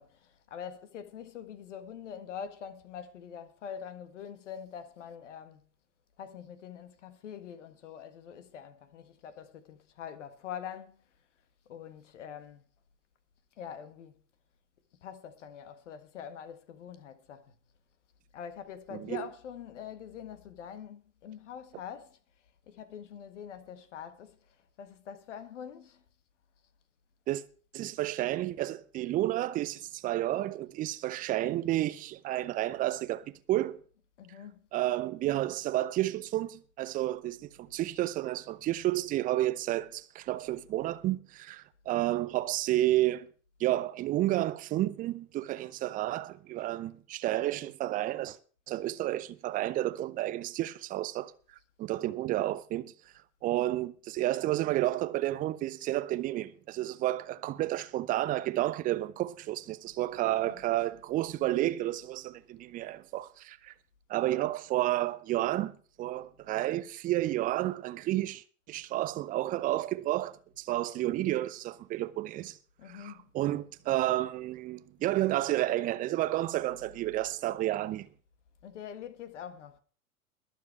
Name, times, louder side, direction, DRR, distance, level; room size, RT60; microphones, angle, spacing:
voice 1, 0.0-5.7 6.2-11.0 11.7-12.6 13.6-14.2 15.0-17.5 18.3-22.2 22.7-24.4 24.8-26.0 34.2-34.7 57.6-57.7 60.0-60.1 60.4-60.6 72.8-73.3 78.6-79.8, left 8 dB, 55° left, 1.7 m, -44 dB
voice 2, 18.9-19.3 27.3-27.4 27.7-33.8 34.7-43.3 43.6-48.4 48.7-51.3 51.8-52.9 53.4-63.7 64.1-72.6 72.9-78.1, right 15 dB, 20° right, 0.7 m, -31 dB
21.5 x 7.6 x 4.5 m
figure-of-eight pair, 95°, 43 cm